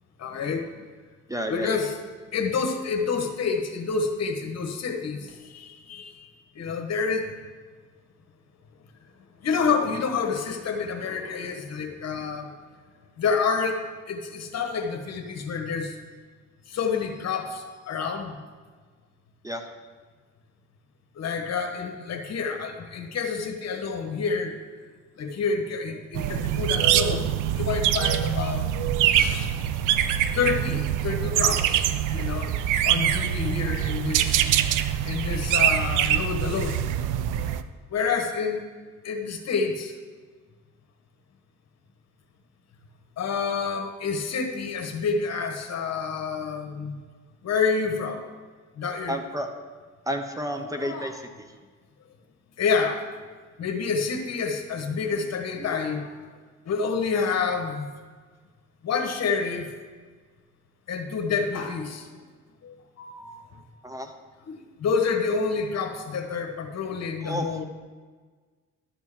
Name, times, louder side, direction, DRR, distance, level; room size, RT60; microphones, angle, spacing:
voice 1, 0.2-0.7 1.5-2.0 2.3-6.3 6.5-7.3 9.4-12.5 13.2-13.8 14.1-16.0 16.7-18.4 21.2-24.6 25.2-28.7 29.1-29.5 30.3-32.5 32.8-34.4 35.0-36.8 37.9-38.6 39.0-40.0 43.2-46.9 47.4-48.2 48.8-49.2 50.6-51.2 52.6-53.0 53.6-56.1 56.6-57.9 58.8-59.7 60.9-62.1 62.6-63.3 64.5-67.6, left 5 dB, 60° left, 5 dB, 1.3 m, -28 dB
voice 2, 1.3-1.8 19.4-19.6 49.1-49.5 50.1-51.2 63.8-64.1 67.2-67.5, equal, 10° right, 6 dB, 0.8 m, -30 dB
sound 1, 26.1-37.6, right 11 dB, 90° right, 0.5 m, -24 dB
11.5 x 4.5 x 7.3 m, 1.5 s
cardioid pair, 90°, 30 cm